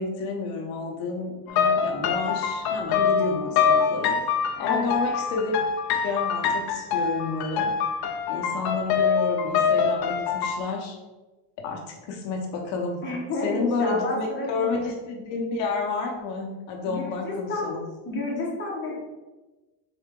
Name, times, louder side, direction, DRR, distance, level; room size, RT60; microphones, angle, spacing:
voice 1, 0.0-4.2 4.6-5.5 6.0-7.7 8.0-11.0 11.6-13.1 13.4-17.8, left 3 dB, 85° left, 1 dB, 0.9 m, -30 dB
sound 1, 1.5-10.6, left 6 dB, 55° left, 0.7 m, -24 dB
voice 2, 4.6-4.9 13.0-14.7 16.8-17.8 18.0-19.0, left 2 dB, 25° left, -4 dB, 1.3 m, -30 dB
3.9 x 3.7 x 3.6 m, 1.2 s
cardioid pair, 150°, 44 cm